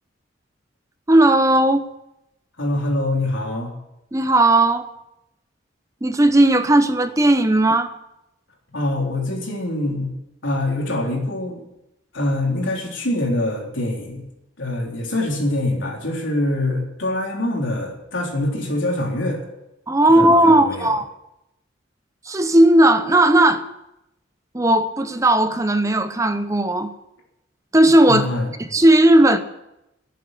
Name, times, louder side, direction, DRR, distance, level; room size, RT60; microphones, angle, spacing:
voice 1, 1.1-1.9 4.1-4.9 6.0-7.9 19.9-21.1 22.2-23.7 24.5-26.9 27.7-28.2 28.6-29.4, right 1 dB, 15° right, 0.7 m, -16 dB
voice 2, 2.6-3.7 8.7-10.1 10.4-11.6 12.1-14.2 14.6-19.4 20.1-20.9 28.1-28.5, left 1 dB, 80° left, 3.7 m, -24 dB
12.0 x 8.5 x 9.8 m
head